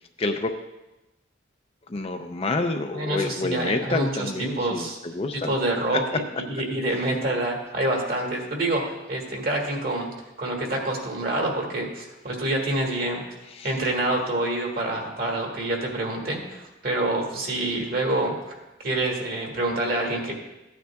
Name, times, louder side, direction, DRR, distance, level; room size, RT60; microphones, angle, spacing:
voice 1, 0.2-0.5 1.9-5.5 13.5-13.7, left 2 dB, 30° left, 5 dB, 0.5 m, -28 dB
voice 2, 2.9-4.3 4.6-5.0 5.3-10.1 10.4-13.2 13.6-20.3, right 1 dB, 50° right, 0 dB, 1.8 m, -27 dB
14.5 x 9.4 x 2.3 m, 1.0 s
head